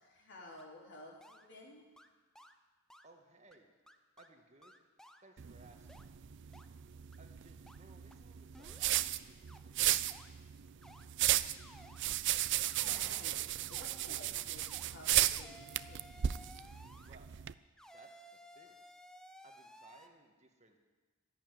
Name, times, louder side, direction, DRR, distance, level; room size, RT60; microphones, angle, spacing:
voice 1, 0.0-1.8 12.8-16.0, left 1 dB, 55° left, -1 dB, 3.8 m, -54 dB
sound 1, 0.6-0.7 1.2-1.5 2.0-2.1 2.3-2.5 2.9-3.1 3.5-3.6 3.9-4.3 4.6-5.2 5.9-6.0 6.5-6.7 7.1-7.2 7.7-7.8 8.1-8.2 8.5-8.9 9.5-9.6 10.0-10.3 10.8-11.0 11.6-12.0 12.7-13.0 13.6-13.9 14.6-14.9 15.3-17.1 17.8-20.1, equal, 5° left, 0.7 m, -57 dB
voice 2, 3.0-3.7 4.2-4.8 5.2-6.1 7.2-10.0 17.0-17.4 17.9-18.8 19.4-20.8, right 2 dB, 35° right, 3 dB, 1.6 m, -62 dB
sound 2, 5.4-17.5, right 13 dB, 55° right, 0.4 m, -35 dB
13.0 x 11.0 x 9.4 m, 1.3 s
head